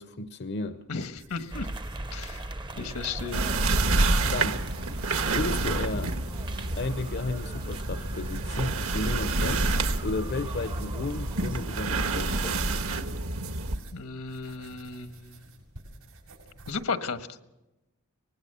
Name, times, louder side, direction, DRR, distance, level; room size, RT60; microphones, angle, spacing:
voice 1, 0.0-0.8 2.7-2.9 4.3-4.6 5.3-6.1 6.8-12.7, left 2 dB, 50° left, 0.8 m, -33 dB
voice 2, 0.9-1.7 2.1-3.4 13.9-15.5 16.7-17.3, left 4 dB, 80° left, 1.5 m, -35 dB
sound 1, 0.9-16.7, right 2 dB, 85° right, 6.7 m, -52 dB
sound 2, 1.5-12.6, right 1 dB, 20° right, 0.7 m, -39 dB
sound 3, 3.3-13.8, right 3 dB, 70° right, 1.5 m, -28 dB
24.5 x 19.5 x 6.9 m
head